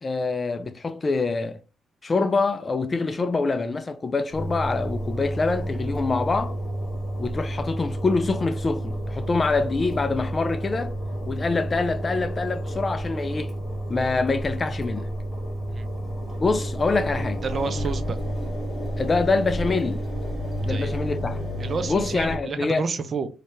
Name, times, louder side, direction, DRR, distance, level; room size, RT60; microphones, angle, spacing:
voice 1, 0.0-1.6 2.0-6.6 7.2-10.9 11.3-13.5 13.9-15.1 16.4-17.4 19.0-20.0 20.6-21.4 21.9-22.8, left 3 dB, 30° left, 0.3 m, -25 dB
Engine, 4.3-22.4, equal, 10° left, 2.0 m, -30 dB
voice 2, 17.4-18.2 20.7-21.0 21.6-23.3, right 4 dB, 45° right, 0.5 m, -30 dB
3.2 x 2.7 x 3.3 m
cardioid pair, 90°, 0 cm